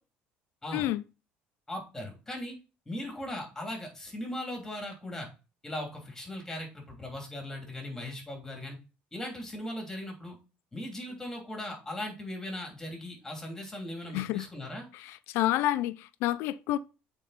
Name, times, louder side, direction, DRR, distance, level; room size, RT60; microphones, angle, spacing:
voice 1, 0.7-1.0 14.1-14.5 14.9-16.8, left 14 dB, 75° left, 0.5 m, -29 dB
voice 2, 1.7-2.5 2.9-5.3 5.6-8.8 9.1-10.4 10.7-14.9, left 1 dB, 10° left, 3.1 m, -38 dB
8.3 x 4.4 x 4.3 m
cardioid pair, 120°, 4 cm